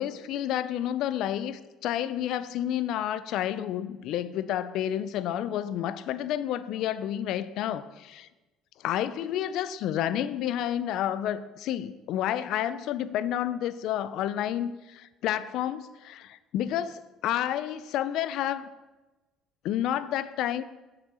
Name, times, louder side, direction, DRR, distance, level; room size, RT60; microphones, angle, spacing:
voice 1, 0.0-8.3 8.8-18.7 19.6-20.6, left 11 dB, 65° left, 15 dB, 0.4 m, -30 dB
7.2 x 6.2 x 4.3 m, 1.1 s
cardioid pair, 135°, 0 cm